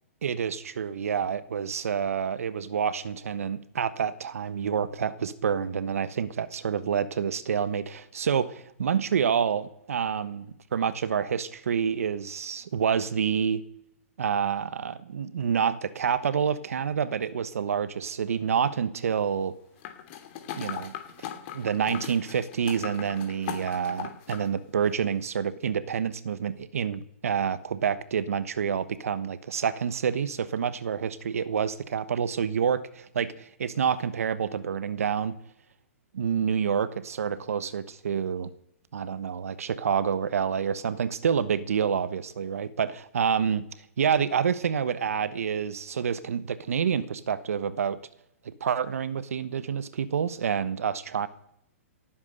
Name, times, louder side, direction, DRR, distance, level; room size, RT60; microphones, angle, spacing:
voice 1, 0.2-13.6 14.2-19.5 20.5-20.9 21.2-21.3 21.5-35.4 36.1-38.5 38.9-43.7 44.0-48.0 48.4-51.3, right 7 dB, 75° right, 15 dB, 1.2 m, -28 dB
sound 1, 19.8-24.5 24.8-24.9, left 10 dB, 45° left, 3.0 m, -39 dB
18.0 x 9.6 x 6.6 m, 0.77 s
hypercardioid pair, 130°, 8 cm